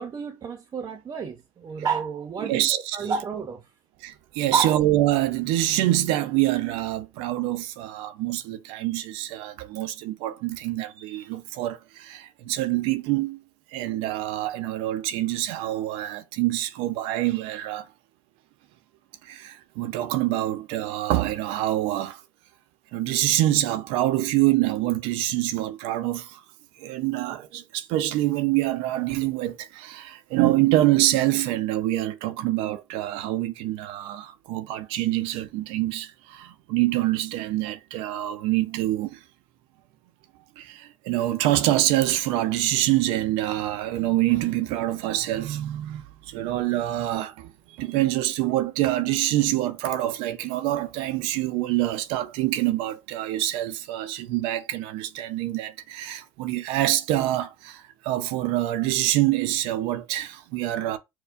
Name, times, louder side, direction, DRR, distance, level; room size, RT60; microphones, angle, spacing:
voice 1, 0.0-3.6 4.5-4.8, right 6 dB, 40° right, 0.7 m, -30 dB
voice 2, 2.4-3.1 4.0-13.4 13.7-17.9 19.2-22.2 22.9-26.4 26.8-39.2 40.6-61.0, right 15 dB, 80° right, 0.4 m, -26 dB
4.4 x 2.2 x 2.5 m
supercardioid pair, 90°, 9 cm